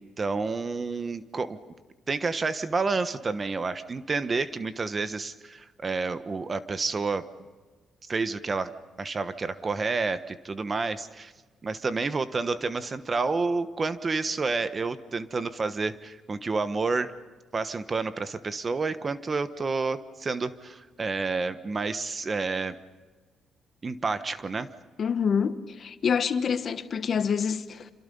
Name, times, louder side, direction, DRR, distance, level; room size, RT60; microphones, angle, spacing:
voice 1, 0.0-1.6 2.1-7.2 8.1-8.7 9.0-11.3 11.6-17.1 17.5-22.8 23.8-24.7, right 4 dB, 35° right, 1.2 m, -29 dB
voice 2, 25.0-27.9, left 6 dB, 50° left, 1.2 m, -27 dB
27.5 x 27.0 x 5.5 m
cardioid pair, 90°, 0 cm